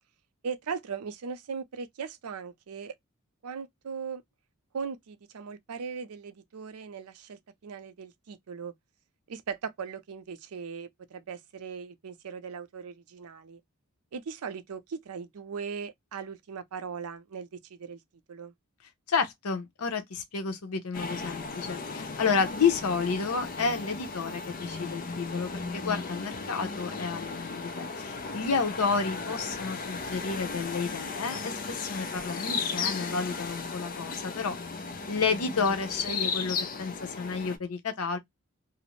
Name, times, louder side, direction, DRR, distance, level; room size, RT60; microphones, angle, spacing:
voice 1, 0.4-2.9 3.4-4.2 4.7-8.7 9.3-13.6 14.1-18.0 18.3-18.5, right 6 dB, 85° right, 0.5 m, -39 dB
voice 2, 19.1-34.6 35.1-38.2, left 5 dB, 85° left, 0.7 m, -31 dB
sound 1, 20.9-37.6, left 4 dB, 40° left, 0.4 m, -36 dB
2.5 x 2.0 x 2.8 m
head